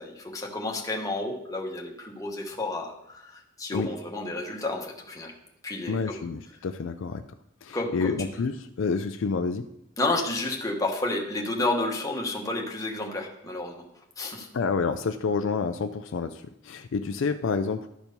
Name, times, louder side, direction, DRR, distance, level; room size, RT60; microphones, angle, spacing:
voice 1, 0.0-5.3 5.6-6.2 7.7-8.2 10.0-13.8 14.2-14.5, left 2 dB, 15° left, 0 dB, 1.2 m, -31 dB
voice 2, 5.9-7.2 7.6-9.7 14.5-17.9, left 4 dB, 60° left, 8 dB, 0.4 m, -29 dB
12.0 x 4.5 x 5.2 m, 0.81 s
head